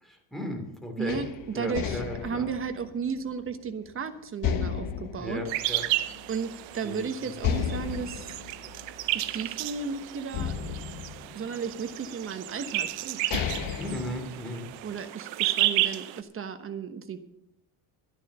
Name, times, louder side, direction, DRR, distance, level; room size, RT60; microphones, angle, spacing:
voice 1, 0.0-1.2 1.5-2.5 5.2-5.9 6.8-7.1 13.8-14.7, equal, ahead, 2 dB, 2.8 m, -35 dB
voice 2, 1.0-5.4 6.3-8.4 9.1-10.8 11.3-13.2 14.8-17.2, right 6 dB, 25° right, 8 dB, 1.2 m, -34 dB
sound 1, 1.1-3.9 4.4-6.4 6.7-6.8 7.4-9.8 10.3-11.9 12.7-12.8 13.1-14.9, left 8 dB, 45° left, 1.1 m, -33 dB
sound 2, 5.5-16.2, right 14 dB, 65° right, 0.9 m, -32 dB
11.5 x 10.5 x 7.0 m, 0.81 s
cardioid pair, 145°, 47 cm